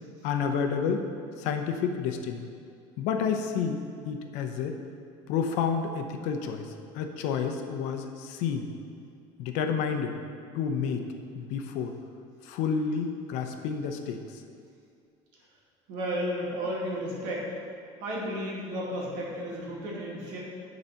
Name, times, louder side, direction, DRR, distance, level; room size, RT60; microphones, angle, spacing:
voice 1, 0.2-1.0 1.4-2.4 3.0-4.7 5.3-6.7 6.9-8.7 9.4-10.1 10.5-11.0 11.3-11.9 12.5-14.2, left 6 dB, 70° left, 6 dB, 0.8 m, -29 dB
voice 2, 15.9-17.5 18.0-20.4, equal, 75° right, -3 dB, 2.2 m, -33 dB
9.8 x 4.1 x 5.7 m, 2.4 s
cardioid pair, 160°, 13 cm